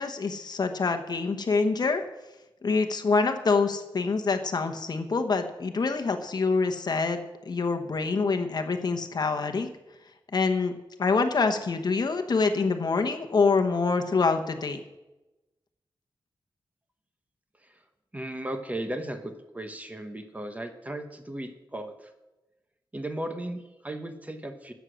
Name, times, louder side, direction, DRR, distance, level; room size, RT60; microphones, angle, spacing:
voice 1, 0.0-2.0 2.6-9.7 10.3-10.7 11.0-14.8, left 4 dB, 50° left, 6 dB, 1.0 m, -26 dB
voice 2, 18.1-22.1 22.9-24.7, right 1 dB, 15° right, 7 dB, 1.0 m, -36 dB
13.0 x 8.2 x 6.3 m, 1.0 s
wide cardioid pair, 125°, 9 cm